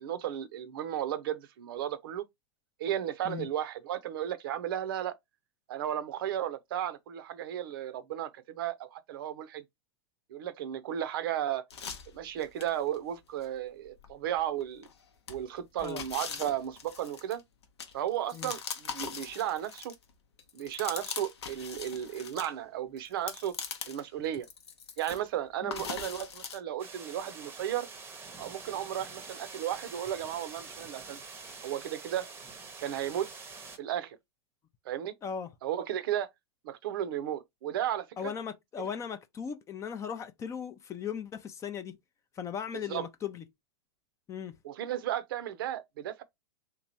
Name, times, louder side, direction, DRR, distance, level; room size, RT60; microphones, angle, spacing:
voice 1, 0.0-2.3 2.8-5.1 5.7-9.6 10.3-11.6 12.1-14.9 15.3-17.4 17.9-19.9 20.5-23.5 23.9-24.5 25.0-27.9 28.4-31.2 31.6-32.3 32.8-33.3 33.8-34.2 34.9-35.1 35.6-36.3 36.6-38.3 38.8-38.9 42.7-43.1 44.6-46.2, right 11 dB, 55° right, 0.6 m, -34 dB
sound 1, 11.7-13.0 13.4-13.5 14.0-14.9 15.3-20.1 20.4-22.5 23.0-24.1 24.3-25.3 25.7-26.6, left 6 dB, 70° left, 0.8 m, -41 dB
sound 2, 26.8-33.8, right 4 dB, 15° right, 0.8 m, -46 dB
voice 2, 38.2-42.0 42.4-43.4 44.3-44.5, left 7 dB, 20° left, 0.5 m, -38 dB
3.5 x 3.0 x 2.7 m
figure-of-eight pair, 100°, 14 cm